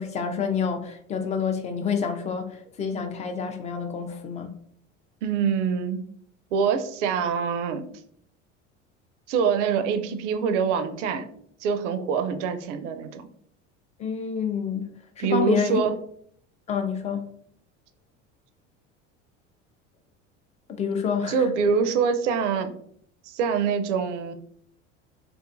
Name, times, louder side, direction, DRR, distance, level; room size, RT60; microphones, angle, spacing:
voice 1, 0.0-4.5 14.0-14.9 15.2-15.8 16.7-17.3 20.8-21.4, left 6 dB, 20° left, 6 dB, 0.3 m, -28 dB
voice 2, 5.2-6.0 6.5-7.8 9.3-11.3 11.6-13.3 15.2-15.9 21.3-22.7 23.2-24.3, right 6 dB, 70° right, 9 dB, 0.5 m, -25 dB
2.5 x 2.3 x 2.5 m, 0.64 s
hypercardioid pair, 75°, 37 cm